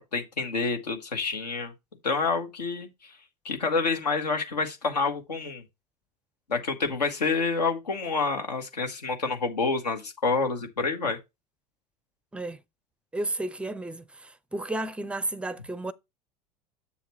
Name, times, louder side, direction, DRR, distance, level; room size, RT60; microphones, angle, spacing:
voice 1, 0.1-1.7 2.0-3.1 3.4-5.6 6.5-11.2, left 4 dB, 75° left, 1.3 m, -28 dB
voice 2, 13.1-14.0 14.5-15.9, right 2 dB, 5° right, 0.5 m, -32 dB
7.0 x 7.0 x 3.0 m
figure-of-eight pair, 75°, 21 cm